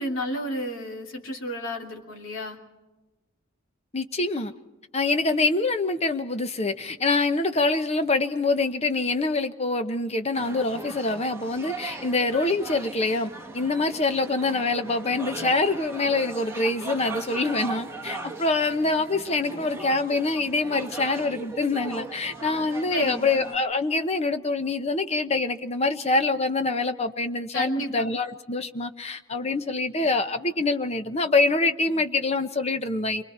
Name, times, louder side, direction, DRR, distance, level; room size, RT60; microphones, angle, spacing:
voice 1, 0.0-2.6 22.9-23.4 27.5-28.1, equal, 70° left, 1 dB, 3.0 m, -31 dB
voice 2, 3.9-4.5 4.9-33.2, left 3 dB, 30° left, 8 dB, 1.0 m, -25 dB
sound 1, 10.3-23.6, right 3 dB, 10° right, 1.4 m, -39 dB
29.0 x 23.5 x 4.4 m, 1.1 s
head